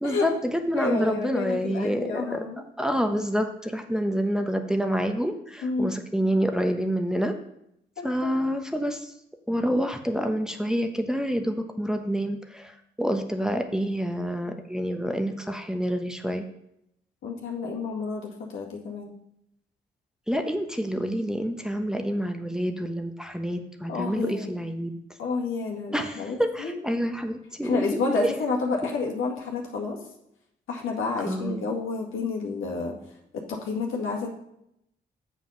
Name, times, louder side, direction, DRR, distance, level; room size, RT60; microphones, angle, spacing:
voice 1, 0.0-2.4 2.8-7.4 8.0-9.1 9.5-12.7 13.0-16.4 20.3-25.0 25.9-28.3 31.3-31.6, equal, 5° right, 4 dB, 1.1 m, -27 dB
voice 2, 0.8-2.6 5.6-6.0 8.0-8.4 17.2-19.1 23.9-24.6 25.2-26.7 27.6-30.0 30.7-33.0 33.3-34.3, left 4 dB, 80° left, -1 dB, 2.0 m, -30 dB
7.1 x 6.0 x 5.7 m, 0.79 s
supercardioid pair, 50°, 21 cm